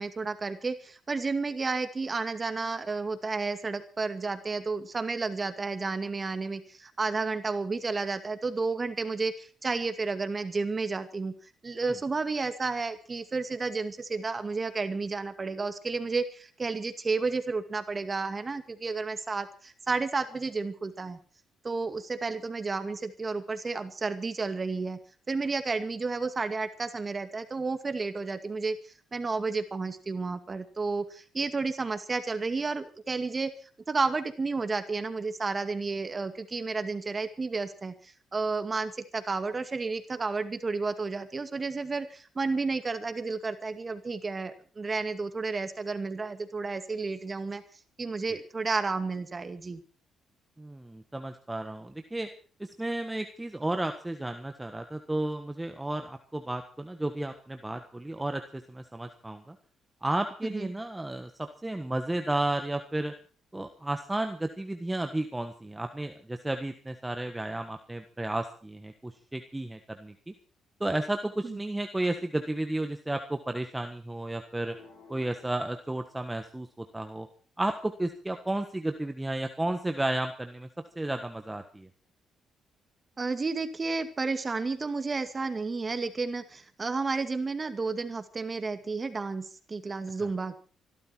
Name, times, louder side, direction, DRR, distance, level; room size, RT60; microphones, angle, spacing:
voice 1, 0.0-11.3 11.6-21.2 21.6-25.0 25.3-28.8 29.1-33.5 33.9-37.9 38.3-47.6 48.0-49.8 60.4-60.7 71.4-71.6 83.2-90.6, right 4 dB, 30° right, 9 dB, 2.2 m, -31 dB
voice 2, 50.6-52.3 52.6-59.6 60.0-63.1 63.5-70.3 70.8-74.7 75.1-77.3 77.6-80.7 80.9-81.9 90.2-90.3, right 1 dB, 10° right, 6 dB, 1.4 m, -33 dB
sound 1, 74.5-76.6, left 4 dB, 85° left, 7.3 m, -55 dB
24.5 x 12.5 x 4.6 m, 0.41 s
cardioid pair, 90°, 0 cm